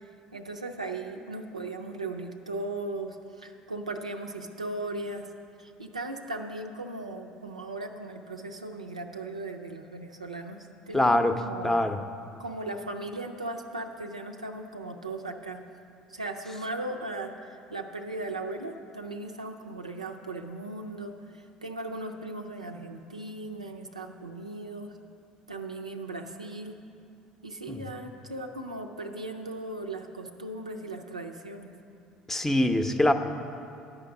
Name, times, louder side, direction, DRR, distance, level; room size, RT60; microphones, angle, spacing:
voice 1, 0.0-5.3 5.6-11.7 12.4-15.7 16.1-24.9 25.5-26.8 27.4-31.8, right 2 dB, 85° right, 4 dB, 0.5 m, -37 dB
voice 2, 10.9-11.3 11.6-12.0 27.7-27.8 32.3-33.1, left 1 dB, 10° left, 8 dB, 0.6 m, -23 dB
11.0 x 5.2 x 7.1 m, 2.5 s
figure-of-eight pair, 60°, 4 cm